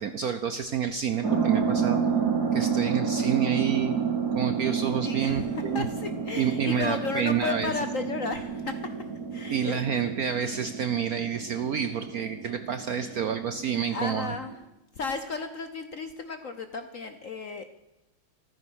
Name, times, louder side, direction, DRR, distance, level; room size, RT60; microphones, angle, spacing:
voice 1, 0.0-2.0 2.5-3.9 4.3-5.9 6.4-7.7 9.5-14.4, right 8 dB, 65° right, 10 dB, 0.9 m, -28 dB
sound 1, 1.2-14.5, right 6 dB, 50° right, 3.1 m, -30 dB
voice 2, 5.0-9.1 9.3-9.8 13.9-14.6 15.0-17.7, left 4 dB, 55° left, 8 dB, 0.9 m, -34 dB
14.0 x 14.0 x 6.3 m, 0.96 s
omnidirectional pair, 2.3 m